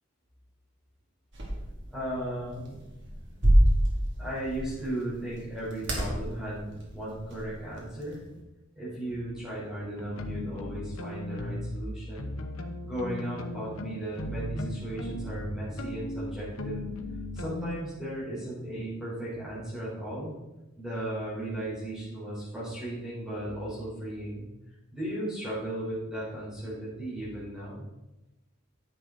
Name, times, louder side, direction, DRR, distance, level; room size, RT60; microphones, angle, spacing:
sound 1, 1.3-8.4, right 1 dB, 55° right, 2.4 m, -29 dB
voice 1, 1.9-2.8 4.2-8.2 8.7-12.4 12.8-16.9 17.3-20.3 20.8-24.5 24.9-27.9, right 1 dB, 5° right, -11 dB, 3.9 m, -36 dB
sound 2, 9.1-9.4 10.0-11.8 12.2-17.8, left 1 dB, 80° left, 1.0 m, -37 dB
10.5 x 7.5 x 4.0 m, 1.0 s
head